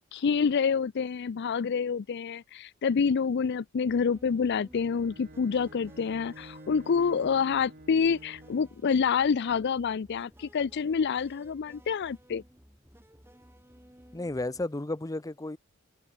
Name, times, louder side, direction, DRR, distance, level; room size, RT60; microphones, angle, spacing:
voice 1, 0.1-12.4, left 6 dB, 55° left, 0.4 m, -27 dB
sound 1, 3.9-14.6, equal, 10° right, 7.4 m, -56 dB
Bowed string instrument, 4.7-8.9, right 1 dB, 45° right, 3.1 m, -50 dB
voice 2, 14.1-15.6, left 2 dB, 15° left, 0.7 m, -33 dB
open air
head